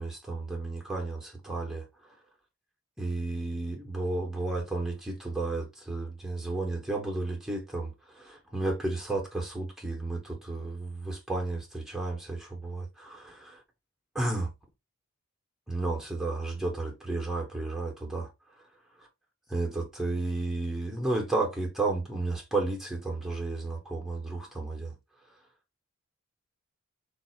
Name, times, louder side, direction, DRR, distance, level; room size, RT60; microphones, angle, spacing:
voice 1, 0.0-1.9 3.0-13.6 14.1-14.5 15.7-18.3 19.0-19.1 19.5-24.9, right 2 dB, 5° right, 0.7 m, -32 dB
3.6 x 2.4 x 4.3 m
head